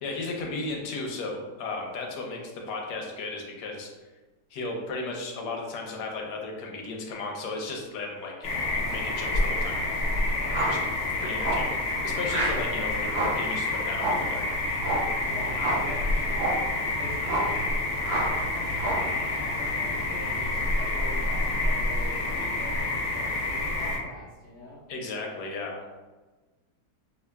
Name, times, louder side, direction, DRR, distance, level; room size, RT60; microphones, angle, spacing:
voice 1, 0.0-3.9 4.5-8.6 8.9-9.8 10.6-10.8 11.2-14.6 24.9-26.1, left 3 dB, 85° left, 0 dB, 1.3 m, -35 dB
sound 1, 8.4-24.0, left 2 dB, 70° left, 0.6 m, -28 dB
voice 2, 10.3-10.9 15.2-24.8, left 2 dB, 5° left, -9 dB, 0.9 m, -43 dB
sound 2, 10.5-10.8 11.4-11.7 12.3-12.7 13.1-13.5 13.9-14.3 14.8-15.1 15.6-15.9 16.3-16.7 17.2-17.6 18.0-18.4 18.8-19.1, right 2 dB, 85° right, 0.5 m, -29 dB
4.7 x 2.6 x 2.2 m, 1.2 s
omnidirectional pair, 1.8 m